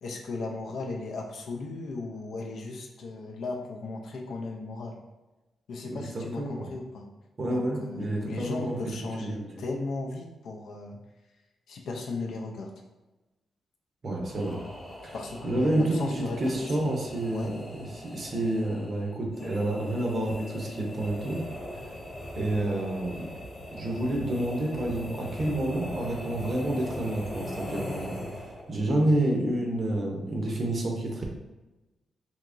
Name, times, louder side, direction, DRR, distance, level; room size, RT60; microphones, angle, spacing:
voice 1, 0.0-5.0 5.7-7.1 7.5-11.0 11.7-12.7 15.1-16.9 17.3-17.6, left 3 dB, 75° left, 1 dB, 0.5 m, -36 dB
voice 2, 5.8-6.7 7.4-9.5 14.0-14.6 15.0-15.1 15.4-21.4 22.3-23.3 23.7-28.2 28.7-31.3, right 1 dB, 35° right, 0 dB, 0.6 m, -29 dB
sound 1, 14.2-28.8, equal, 25° left, 1.1 m, -40 dB
3.5 x 2.9 x 2.5 m, 1.1 s
wide cardioid pair, 155°, 0 cm